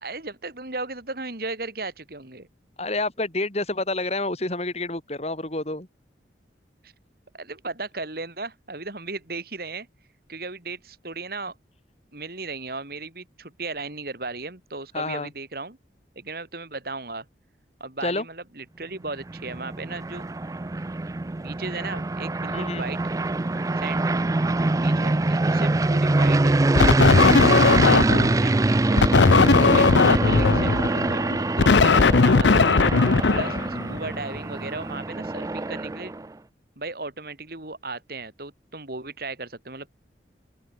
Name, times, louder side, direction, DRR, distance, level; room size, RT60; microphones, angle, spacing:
voice 1, 0.0-2.5 6.8-6.9 7.3-9.9 10.3-11.5 12.1-15.8 16.1-17.3 17.8-20.3 21.4-23.0 23.7-24.1 24.8-26.6 27.5-29.0 29.4-32.7 33.3-36.1 36.8-39.9, right 3 dB, 55° right, 3.0 m, -36 dB
voice 2, 2.8-5.9 14.9-15.3 18.0-18.2 22.5-22.8, left 2 dB, 35° left, 3.3 m, -28 dB
sound 1, 19.1-36.3, right 2 dB, 20° right, 0.4 m, -24 dB
sound 2, 26.8-28.4 29.0-34.1, left 4 dB, 85° left, 0.7 m, -18 dB
open air
head